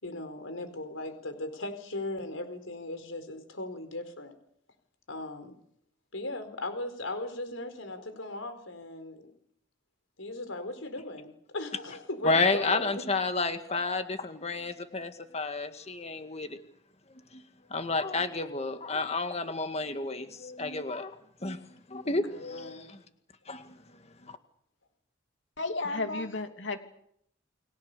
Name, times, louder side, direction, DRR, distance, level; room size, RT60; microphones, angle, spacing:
voice 1, 0.0-4.3 5.1-5.6 6.1-9.3 10.2-13.1 22.0-23.0, left 2 dB, 85° left, 9 dB, 4.4 m, -38 dB
voice 2, 12.2-16.6 17.3-17.4 17.7-21.2 21.4-21.6 21.9-23.0 23.5-23.8 24.2-24.4, left 3 dB, 30° left, 8 dB, 1.9 m, -31 dB
voice 3, 25.6-26.8, left 3 dB, 65° left, 6 dB, 3.0 m, -32 dB
30.0 x 21.0 x 6.9 m, 0.71 s
head